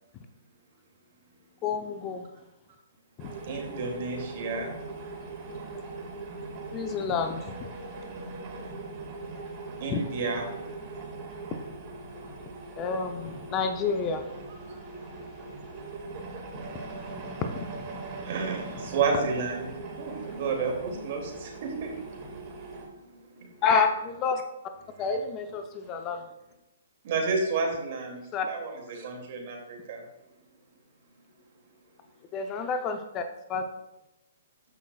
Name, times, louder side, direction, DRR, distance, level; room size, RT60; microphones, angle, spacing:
voice 1, 1.6-2.3 3.2-3.3 6.7-7.7 9.9-10.1 12.8-14.3 16.7-16.9 17.2-18.2 23.6-24.4 25.0-26.2 28.3-28.5 32.3-33.6, left 5 dB, 25° left, 6 dB, 0.7 m, -29 dB
sound 1, 3.2-22.8, right 3 dB, 35° right, 2.0 m, -40 dB
voice 2, 3.5-4.7 9.8-10.5 18.2-19.7 20.0-21.9 22.2-22.3 23.1-23.2 27.0-28.2 28.5-30.0, right 4 dB, 50° right, 1 dB, 2.4 m, -31 dB
14.0 x 5.7 x 2.4 m, 0.92 s
hypercardioid pair, 130°, 0 cm